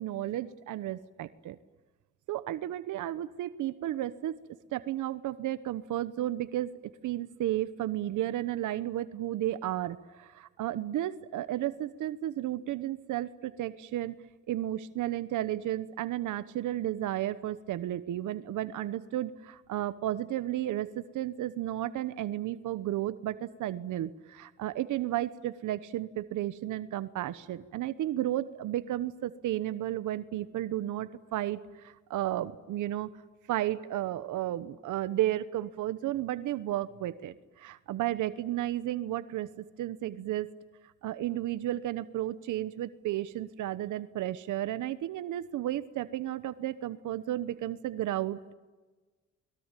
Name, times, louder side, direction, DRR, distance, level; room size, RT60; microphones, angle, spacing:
voice 1, 0.0-1.6 2.3-4.4 4.7-6.7 7.0-14.2 14.5-33.1 33.5-40.5 41.0-48.5, right 13 dB, 80° right, 14 dB, 1.1 m, -33 dB
29.0 x 21.5 x 9.1 m, 1.3 s
cardioid pair, 90°, 30 cm